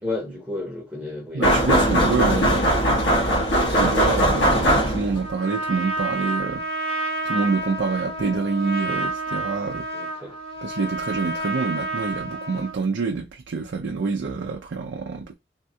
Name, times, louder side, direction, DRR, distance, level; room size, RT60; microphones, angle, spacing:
voice 1, 0.0-1.7 9.9-10.4, left 2 dB, 5° right, 0.8 m, -32 dB
voice 2, 1.3-2.6 3.7-6.7 7.2-9.9 10.6-15.3, right 4 dB, 80° right, 0.5 m, -26 dB
sound 1, 1.4-5.3, equal, 80° left, 1.3 m, -19 dB
Trumpet, 5.1-12.8, right 2 dB, 30° left, 0.6 m, -29 dB
3.4 x 2.2 x 2.6 m
head